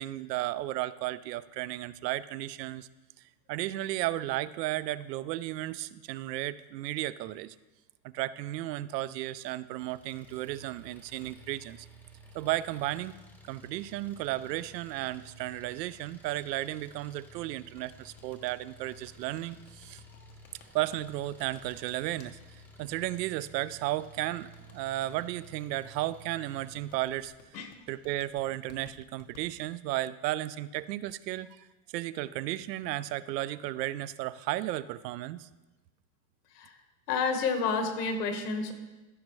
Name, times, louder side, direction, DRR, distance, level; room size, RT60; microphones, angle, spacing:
voice 1, 0.0-2.9 3.5-7.6 8.0-11.9 12.3-13.2 13.5-20.0 20.7-27.3 27.9-31.7 31.9-35.5, right 15 dB, 85° right, 17 dB, 0.6 m, -34 dB
Engine, 9.8-27.3, right 1 dB, 5° left, 0.6 m, -54 dB
sound 1, 17.8-22.3 23.4-25.1 26.6-29.4, left 6 dB, 55° left, 1.3 m, -57 dB
voice 2, 37.1-38.7, left 4 dB, 75° left, 6 dB, 1.6 m, -30 dB
14.5 x 6.4 x 3.1 m, 1.1 s
supercardioid pair, 145°, 48 cm